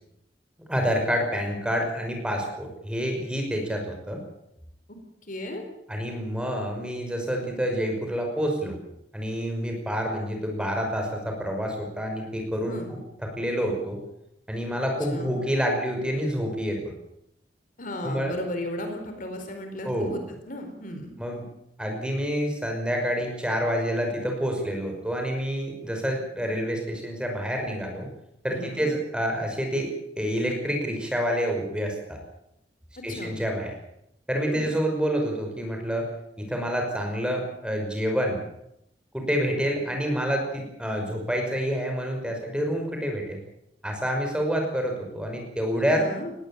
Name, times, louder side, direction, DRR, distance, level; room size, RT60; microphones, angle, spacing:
voice 1, 0.7-4.2 5.9-8.8 9.1-14.0 14.5-16.8 18.0-18.3 19.8-20.1 21.2-21.4 21.8-28.1 28.4-29.9 30.2-32.2 33.0-33.8 34.3-36.1 36.4-38.4 39.1-43.4 43.8-46.1, equal, 5° right, 2 dB, 5.7 m, -28 dB
voice 2, 5.3-5.6 12.7-12.9 15.1-15.4 17.8-20.2 20.5-21.1 28.5-28.9 33.1-33.3 34.4-34.7 45.9-46.3, left 1 dB, 50° left, 5 dB, 4.3 m, -35 dB
20.0 x 17.5 x 8.7 m, 0.80 s
head